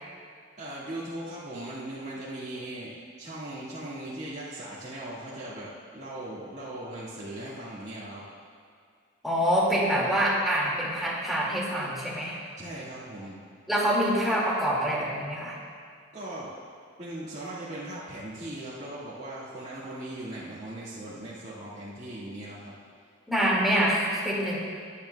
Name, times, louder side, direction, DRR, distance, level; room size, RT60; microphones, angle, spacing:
voice 1, 0.6-5.7 5.9-8.2 12.6-13.4 16.1-16.5 17.0-22.7, right 1 dB, 35° right, -11 dB, 1.7 m, -39 dB
voice 2, 9.2-12.4 13.7-15.6 23.3-24.6, equal, ahead, -6 dB, 2.1 m, -25 dB
17.0 x 10.5 x 2.3 m, 2.2 s
head